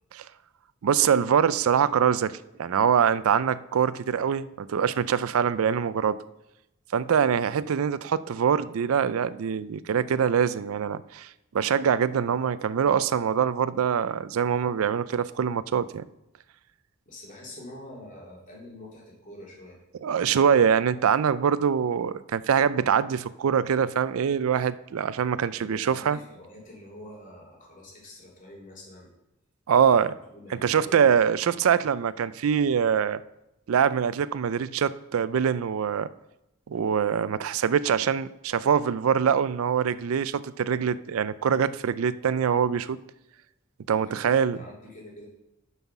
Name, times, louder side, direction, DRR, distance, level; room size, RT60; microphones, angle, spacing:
voice 1, 0.8-6.2 6.9-11.3 11.5-16.1 20.0-26.2 29.7-30.1 30.6-33.2 33.7-36.1 36.7-43.0 43.9-44.6, right 7 dB, 85° right, 16 dB, 0.4 m, -24 dB
voice 2, 17.0-19.8 25.5-29.1 29.8-31.5 44.0-45.3, left 1 dB, 40° left, -4 dB, 3.0 m, -46 dB
9.2 x 5.6 x 5.9 m, 0.89 s
head